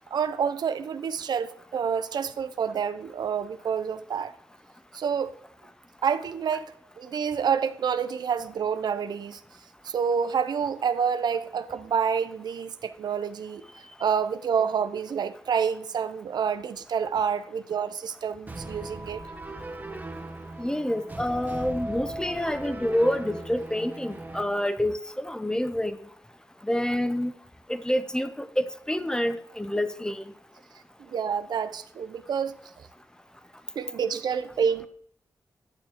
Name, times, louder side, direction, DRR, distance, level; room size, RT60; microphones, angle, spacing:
voice 1, 0.1-4.3 4.9-5.3 6.0-6.7 7.0-9.4 9.8-13.6 14.0-19.2 31.1-32.9 33.8-34.9, right 7 dB, 70° right, 0.4 m, -28 dB
sound 1, 18.5-24.4, right 2 dB, 20° right, 1.0 m, -38 dB
voice 2, 20.6-26.0 26.6-27.3 27.7-30.2, left 1 dB, 10° left, 0.5 m, -27 dB
9.5 x 6.8 x 2.9 m
cardioid pair, 60°, 7 cm